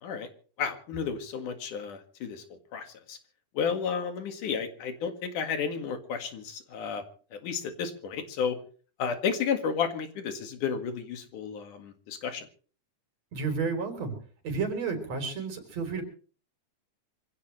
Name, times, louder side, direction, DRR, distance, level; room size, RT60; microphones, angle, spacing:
voice 1, 0.6-2.4 2.7-3.2 3.5-7.0 7.3-8.6 9.0-12.5, left 6 dB, 80° left, 7 dB, 3.4 m, -32 dB
voice 2, 13.3-14.1 14.4-16.0, right 5 dB, 55° right, 5 dB, 4.8 m, -31 dB
25.0 x 16.5 x 3.2 m, 0.40 s
omnidirectional pair, 3.6 m